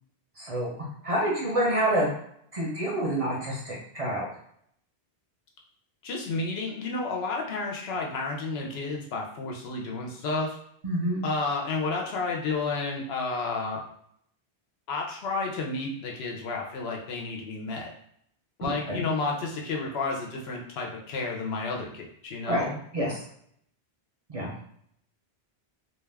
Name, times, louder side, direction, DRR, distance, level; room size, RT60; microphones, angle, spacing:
voice 1, 0.4-0.7 1.0-2.1 2.5-4.3 10.8-11.2 18.6-19.0 22.4-22.7 22.9-23.2 24.3-24.5, right 1 dB, 40° right, -3 dB, 0.6 m, -27 dB
voice 2, 6.0-10.6 11.2-13.8 14.9-17.9 18.6-22.8, left 3 dB, 75° left, 0 dB, 0.9 m, -31 dB
2.4 x 2.3 x 3.3 m, 0.68 s
omnidirectional pair, 1.1 m